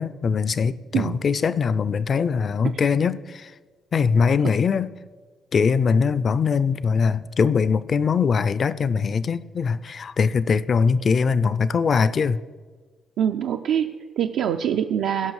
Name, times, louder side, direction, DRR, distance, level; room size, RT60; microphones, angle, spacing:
voice 1, 0.0-3.5 3.9-4.9 5.5-12.4, left 5 dB, 45° left, 0.4 m, -22 dB
voice 2, 13.2-15.3, right 9 dB, 80° right, 0.4 m, -24 dB
16.5 x 5.7 x 4.8 m
cardioid pair, 90°, 0 cm